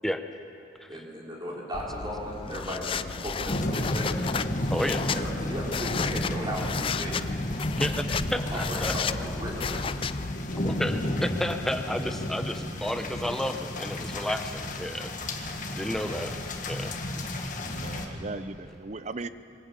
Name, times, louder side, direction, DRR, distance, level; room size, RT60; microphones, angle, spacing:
voice 1, 0.9-4.2 4.9-7.2 8.5-10.0, equal, 25° right, -4 dB, 4.1 m, -36 dB
sound 1, 1.7-10.3, left 6 dB, 30° left, 0.3 m, -33 dB
sound 2, 3.5-18.1, left 1 dB, 45° left, 1.7 m, -32 dB
voice 2, 4.7-5.1 7.8-8.9 10.6-16.3 16.7-16.9, left 1 dB, ahead, 6 dB, 0.9 m, -32 dB
voice 3, 17.6-19.3, right 3 dB, 40° right, 13 dB, 0.6 m, -38 dB
23.0 x 13.5 x 8.8 m, 3.0 s
head